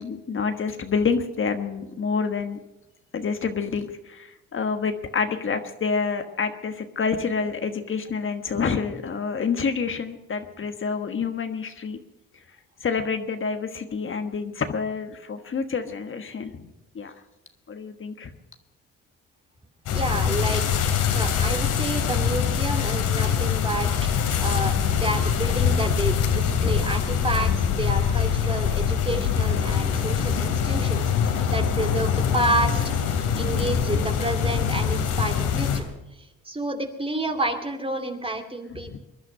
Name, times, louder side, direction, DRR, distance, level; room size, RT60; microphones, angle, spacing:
voice 1, 0.0-2.6 3.1-12.0 12.8-16.7 16.9-17.1 17.7-18.3 26.6-26.9 29.7-30.1 33.2-34.1 38.9-39.0, left 5 dB, 40° left, 7 dB, 1.4 m, -28 dB
sound 1, 19.9-35.8, left 7 dB, 85° left, 2.7 m, -23 dB
voice 2, 19.9-20.7 21.1-24.1 24.4-32.8 33.4-35.9 36.2-39.0, right 2 dB, 20° right, 5 dB, 2.5 m, -29 dB
22.0 x 11.0 x 5.6 m, 0.98 s
cardioid pair, 90°, 30 cm